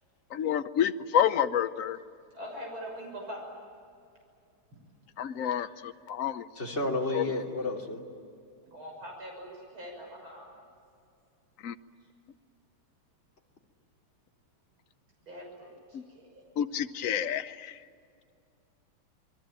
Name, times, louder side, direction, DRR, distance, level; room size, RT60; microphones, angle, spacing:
voice 1, 0.3-2.0 5.2-6.4 7.1-7.2 11.6-11.7 15.9-16.0 16.6-17.7, left 9 dB, 60° left, 11 dB, 0.9 m, -29 dB
voice 2, 2.4-3.4 5.6-5.7 8.7-10.5 15.3-15.7, equal, 75° right, -1 dB, 7.2 m, -42 dB
voice 3, 6.5-8.0, left 2 dB, 30° left, 0 dB, 3.2 m, -31 dB
28.0 x 21.5 x 9.0 m, 2.4 s
omnidirectional pair, 2.3 m